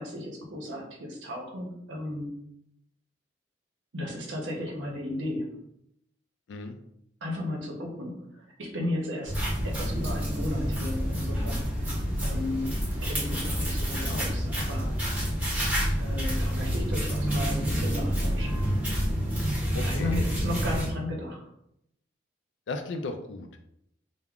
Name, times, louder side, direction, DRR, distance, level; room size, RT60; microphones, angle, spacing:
voice 1, 0.0-2.3 3.9-5.6 7.2-9.3 9.6-11.9 12.2-15.0 16.0-18.6 19.8-21.4, left 1 dB, 85° right, -1 dB, 0.7 m, -34 dB
sound 1, 9.2-20.9, equal, 10° right, 0.9 m, -28 dB
voice 2, 19.7-20.2 22.7-23.6, left 3 dB, 70° left, 7 dB, 0.3 m, -35 dB
2.3 x 2.0 x 3.5 m, 0.77 s
head